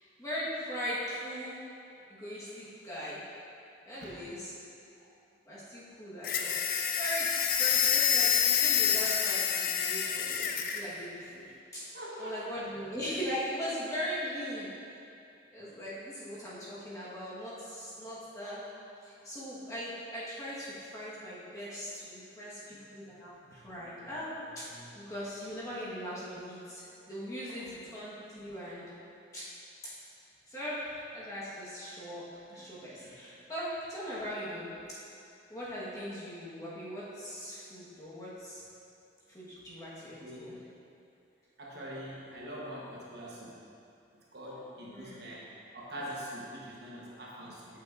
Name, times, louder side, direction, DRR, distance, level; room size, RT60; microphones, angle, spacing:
voice 1, 0.2-1.6 2.1-3.2 3.8-4.7 5.5-6.5 7.0-11.5 11.7-14.7 15.5-18.6 19.0-28.8 29.3-29.4 30.5-32.2 32.5-34.7 35.5-38.6 39.3-40.6 44.9-45.3, equal, 20° left, -9 dB, 1.4 m, -40 dB
sound 1, 6.2-10.8, left 8 dB, 50° left, 0.4 m, -27 dB
voice 2, 11.9-12.5 22.7-23.1 23.4-24.1 24.6-24.9 28.6-28.7 32.5-32.6 32.9-33.2 40.2-40.5 41.6-43.6 44.1-45.4 45.7-47.8, equal, 55° right, -5 dB, 1.1 m, -44 dB
8.6 x 6.3 x 2.6 m, 2.6 s
head